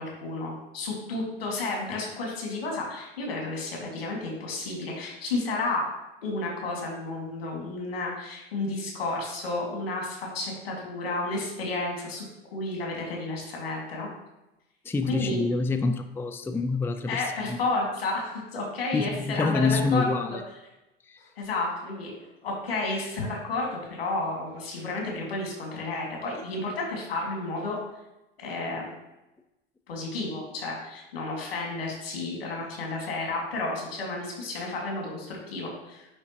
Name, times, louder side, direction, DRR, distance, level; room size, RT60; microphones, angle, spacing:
voice 1, 0.0-5.9 6.2-14.1 15.1-15.4 17.1-20.4 21.4-27.8 28.4-28.9 29.9-36.1, left 2 dB, 85° left, -1 dB, 2.2 m, -32 dB
voice 2, 14.8-17.2 17.5-17.6 18.9-20.4 21.1-21.2, left 3 dB, 10° left, 7 dB, 0.4 m, -26 dB
9.5 x 3.6 x 2.9 m, 0.95 s
hypercardioid pair, 80°, 29 cm